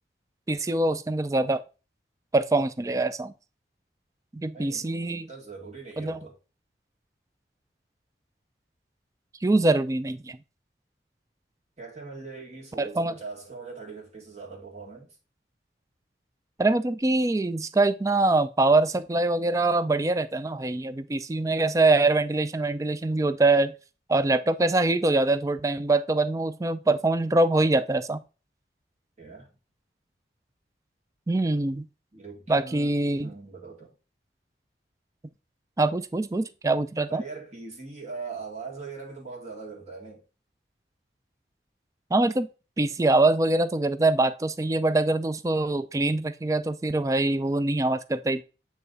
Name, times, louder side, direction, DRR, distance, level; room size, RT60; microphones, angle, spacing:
voice 1, 0.5-1.6 2.3-3.3 4.3-5.3 6.0-6.2 9.4-10.4 12.8-13.1 16.6-23.7 24.1-28.2 31.3-31.9 32.5-33.3 35.8-37.2 42.1-42.5 42.8-48.4, right 2 dB, 20° right, 0.3 m, -24 dB
voice 2, 4.5-6.4 11.8-15.2 29.2-29.5 32.1-33.9 37.1-40.2, right 4 dB, 40° right, 2.0 m, -41 dB
9.0 x 3.1 x 4.0 m
head